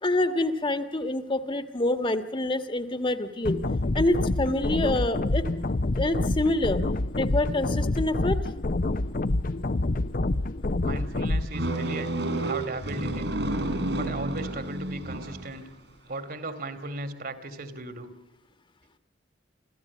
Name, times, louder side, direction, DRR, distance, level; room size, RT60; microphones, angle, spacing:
voice 1, 0.0-3.6 3.9-5.4 6.0-6.8 7.2-8.4, left 2 dB, 30° left, 10 dB, 1.5 m, -26 dB
sound 1, 3.4-11.4, left 2 dB, 50° left, 0.8 m, -27 dB
voice 2, 10.8-12.1 12.4-13.3 13.9-15.7 16.1-18.1, right 2 dB, 55° right, 12 dB, 2.4 m, -36 dB
sound 2, 11.5-15.6, right 1 dB, 70° right, 4.3 m, -30 dB
27.0 x 15.5 x 8.4 m, 0.90 s
head